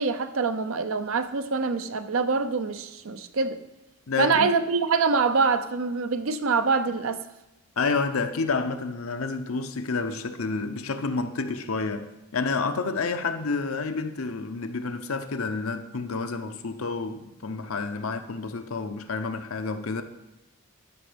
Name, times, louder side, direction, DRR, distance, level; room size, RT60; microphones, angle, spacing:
voice 1, 0.0-3.6 4.2-7.2, right 4 dB, 70° right, 0.6 m, -25 dB
voice 2, 4.1-4.5 7.8-20.0, left 4 dB, 80° left, 0.7 m, -29 dB
12.5 x 5.3 x 5.1 m
head